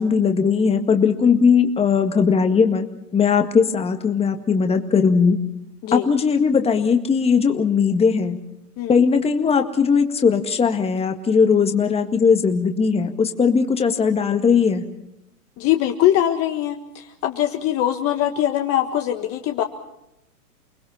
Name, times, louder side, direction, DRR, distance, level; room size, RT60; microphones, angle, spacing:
voice 1, 0.0-5.4 5.9-8.4 8.9-14.8, left 6 dB, 10° left, 6 dB, 1.9 m, -19 dB
voice 2, 15.6-19.6, left 12 dB, 30° left, 5 dB, 1.6 m, -22 dB
29.5 x 20.5 x 5.8 m, 0.84 s
hypercardioid pair, 120°, 47 cm